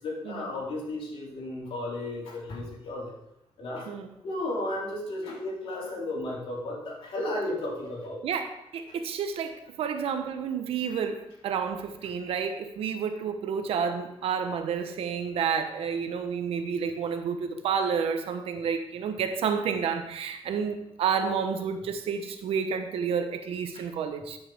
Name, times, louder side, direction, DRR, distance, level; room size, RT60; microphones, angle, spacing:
voice 1, 0.0-3.1 3.6-3.9 4.2-8.2 23.7-23.8, left 1 dB, 75° left, -4 dB, 3.8 m, -34 dB
voice 2, 3.9-4.2 8.2-24.4, right 6 dB, 85° right, 7 dB, 1.1 m, -30 dB
13.0 x 6.7 x 3.6 m, 0.82 s
cardioid pair, 100°, 10 cm